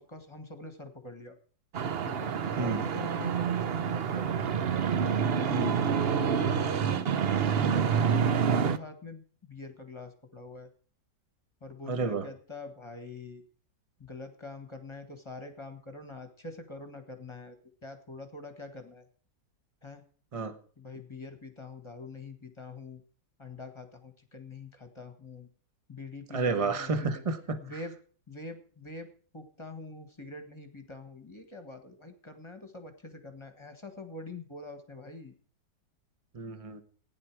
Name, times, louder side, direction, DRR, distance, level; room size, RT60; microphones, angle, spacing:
voice 1, 0.0-1.4 2.0-4.3 5.2-5.5 5.8-7.9 8.3-10.7 11.6-13.4 14.0-17.6 17.8-19.0 19.8-20.0 20.8-23.0 23.4-25.5 25.9-27.2 27.6-27.9 28.3-35.3, left 3 dB, 15° left, 7 dB, 1.5 m, -45 dB
sound 1, 1.7-8.8, right 7 dB, 55° right, 0.6 m, -27 dB
voice 2, 11.9-12.3 20.3-20.6 26.3-27.8 36.3-36.8, right 4 dB, 25° right, 9 dB, 1.0 m, -31 dB
16.0 x 10.0 x 4.7 m, 0.43 s
omnidirectional pair, 1.9 m